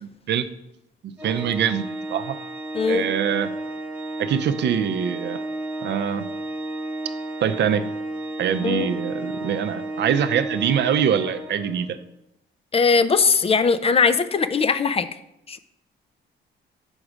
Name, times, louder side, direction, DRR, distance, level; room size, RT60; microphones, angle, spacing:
voice 1, 0.0-0.5 1.0-2.4 2.9-3.5 4.2-5.4 5.8-6.3 7.4-7.9 8.4-12.0, right 8 dB, 60° right, 10 dB, 0.5 m, -24 dB
Organ, 1.2-12.0, right 2 dB, 10° right, 0.8 m, -32 dB
voice 2, 2.7-3.1 8.6-8.9 12.7-15.1 15.5-15.6, left 5 dB, 30° left, 12 dB, 0.4 m, -20 dB
5.3 x 4.8 x 4.9 m, 0.83 s
cardioid pair, 90°, 20 cm